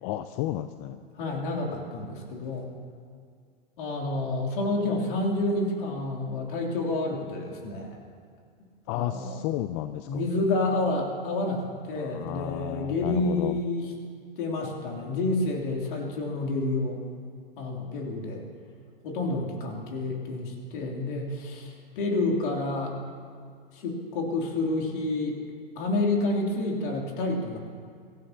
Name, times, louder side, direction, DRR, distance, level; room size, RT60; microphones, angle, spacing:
voice 1, 0.0-1.0 8.9-10.2 12.0-13.6, left 14 dB, 40° left, 11 dB, 0.5 m, -32 dB
voice 2, 1.2-2.7 3.8-8.0 8.9-9.4 10.0-13.9 14.4-17.0 17.6-18.4 19.0-23.0 23.7-25.4 25.7-27.6, left 2 dB, 60° left, 0 dB, 3.2 m, -29 dB
24.5 x 15.0 x 2.9 m, 2.2 s
figure-of-eight pair, 90°, 29 cm